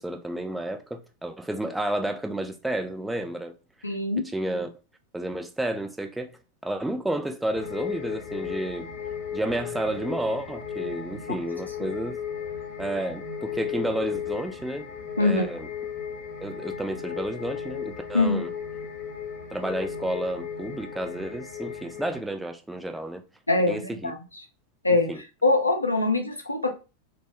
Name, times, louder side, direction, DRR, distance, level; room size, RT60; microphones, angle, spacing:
voice 1, 0.0-3.5 4.3-4.7 5.1-8.9 9.3-12.2 12.8-14.9 15.2-15.7 16.4-18.5 19.5-23.2 23.7-24.1 24.9-25.2, right 1 dB, 5° right, 0.3 m, -31 dB
voice 2, 3.8-4.2 15.2-15.4 18.1-18.4 23.5-24.2 24.8-25.1 25.4-26.7, left 2 dB, 85° left, 0.4 m, -23 dB
sound 1, 7.5-22.2, left 7 dB, 45° left, 0.7 m, -35 dB
2.1 x 2.0 x 2.9 m
figure-of-eight pair, 90°, 0 cm